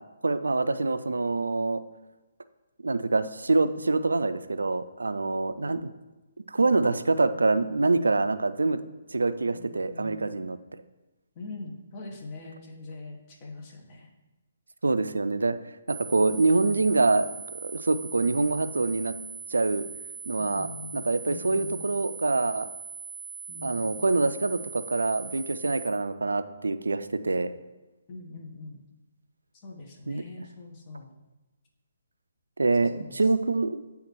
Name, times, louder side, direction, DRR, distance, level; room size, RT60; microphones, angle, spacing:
voice 1, 0.2-1.8 2.8-5.8 6.5-8.8 9.1-10.6 14.8-15.6 15.9-19.1 19.5-19.8 20.3-20.7 20.9-22.7 23.6-27.5 30.1-30.2 32.6-33.8, right 3 dB, 80° right, 12 dB, 0.3 m, -25 dB
voice 2, 9.5-10.2 11.3-14.1 16.3-16.9 20.4-21.9 23.5-23.9 28.1-28.9 29.5-31.1 32.8-33.3, left 3 dB, 30° left, 0 dB, 1.1 m, -43 dB
sound 1, 15.9-25.9, right 6 dB, 15° right, 0.9 m, -41 dB
8.8 x 3.5 x 3.0 m, 1.1 s
figure-of-eight pair, 140°, 0 cm